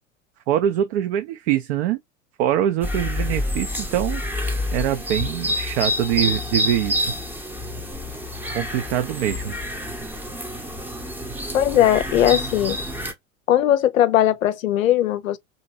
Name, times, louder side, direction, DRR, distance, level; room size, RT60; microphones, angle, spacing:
voice 1, 0.5-2.0 2.4-4.2 4.7-7.1 8.5-9.6, right 11 dB, 50° right, 0.5 m, -23 dB
sound 1, 2.8-13.1, left 1 dB, 5° right, 0.7 m, -28 dB
voice 2, 11.5-12.8 13.5-15.4, left 12 dB, 75° left, 0.6 m, -19 dB
3.0 x 2.6 x 2.6 m
figure-of-eight pair, 80°, 41 cm